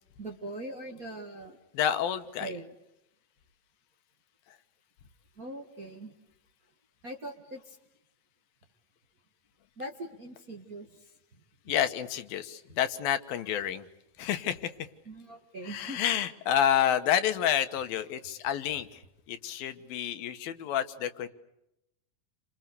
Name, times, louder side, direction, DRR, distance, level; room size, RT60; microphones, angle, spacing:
voice 1, 0.2-1.6 2.4-2.7 5.4-6.1 7.0-7.7 9.8-11.0 15.0-16.2, right 1 dB, 30° right, 1 dB, 1.8 m, -41 dB
voice 2, 1.7-2.6 11.7-13.9 14.2-14.7 15.6-19.0 19.3-21.3, left 10 dB, 85° left, 9 dB, 3.2 m, -29 dB
29.5 x 26.0 x 6.8 m, 0.85 s
omnidirectional pair, 4.1 m